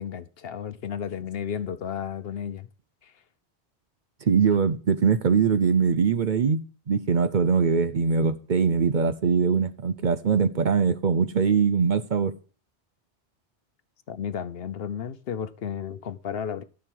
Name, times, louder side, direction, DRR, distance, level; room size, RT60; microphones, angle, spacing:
voice 1, 0.0-2.7 3.0-3.2 14.1-16.6, left 8 dB, 65° left, 1.0 m, -33 dB
voice 2, 4.3-12.3, right 6 dB, 50° right, 0.8 m, -22 dB
12.5 x 6.9 x 4.7 m
omnidirectional pair, 1.1 m